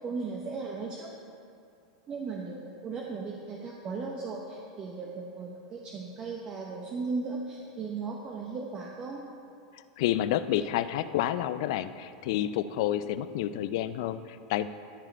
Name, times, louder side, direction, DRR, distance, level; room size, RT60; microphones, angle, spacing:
voice 1, 0.0-1.2 2.1-9.2, right 4 dB, 30° right, -1 dB, 0.9 m, -36 dB
voice 2, 10.0-14.7, left 12 dB, 65° left, 13 dB, 0.4 m, -29 dB
13.5 x 5.0 x 4.4 m, 2.4 s
hypercardioid pair, 115°, 3 cm